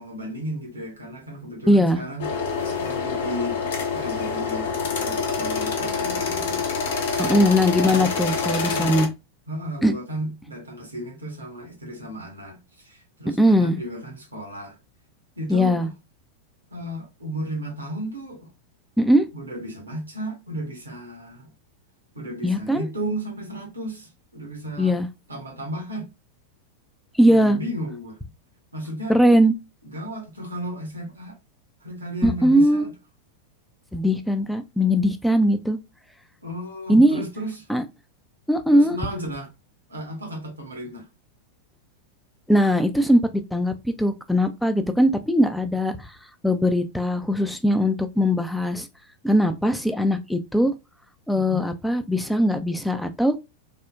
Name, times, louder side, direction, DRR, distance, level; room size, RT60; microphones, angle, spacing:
voice 1, 0.0-2.3 2.8-3.6 3.9-4.7 4.9-6.9 7.2-7.5 7.9-8.1 8.7-9.1 9.5-14.8 15.4-15.9 16.7-18.5 19.3-21.5 22.1-25.0 25.3-26.1 27.3-28.2 28.7-29.2 29.9-31.4 31.8-32.9 36.4-37.6 38.7-39.5 39.9-41.1 51.3-51.7, equal, 80° right, 0.9 m, -34 dB
voice 2, 1.7-2.0 7.2-9.1 9.8-9.9 13.4-13.8 15.5-15.9 19.0-19.3 22.4-22.9 24.8-25.1 27.2-27.6 29.1-29.5 32.2-32.9 33.9-35.8 36.9-37.2 37.7-37.8 38.5-39.0 42.5-43.2 43.5-46.2 46.4-48.9 49.2-50.7 51.3-53.4, equal, ahead, 0.3 m, -20 dB
sound 1, 2.2-9.1, left 5 dB, 60° left, 0.6 m, -26 dB
3.4 x 2.1 x 2.3 m
figure-of-eight pair, 90°, 0 cm